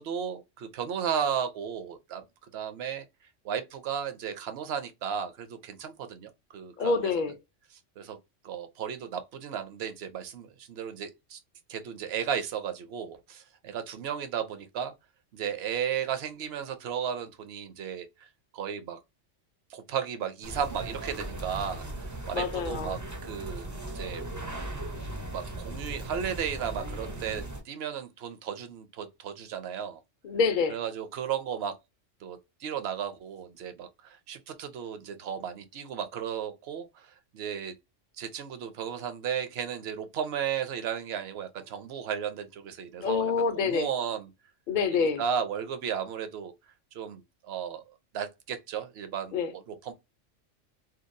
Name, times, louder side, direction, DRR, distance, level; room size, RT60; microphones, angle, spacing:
voice 1, 0.0-2.2 2.5-3.0 3.4-7.1 8.0-8.2 8.4-11.4 11.7-14.9 15.3-18.3 18.5-19.0 19.7-21.8 22.3-24.2 25.3-30.0 30.7-31.7 32.2-37.7 38.2-44.3 44.9-46.5 46.9-47.8 48.1-49.9, right 8 dB, 65° right, 0.8 m, -34 dB
voice 2, 6.8-7.3 22.3-23.0 30.2-30.8 43.0-43.9 44.7-45.2 49.3-49.5, left 5 dB, 55° left, 0.5 m, -27 dB
sound 1, 20.4-27.6, right 1 dB, 30° right, 0.3 m, -38 dB
2.8 x 2.3 x 2.5 m
omnidirectional pair, 1.3 m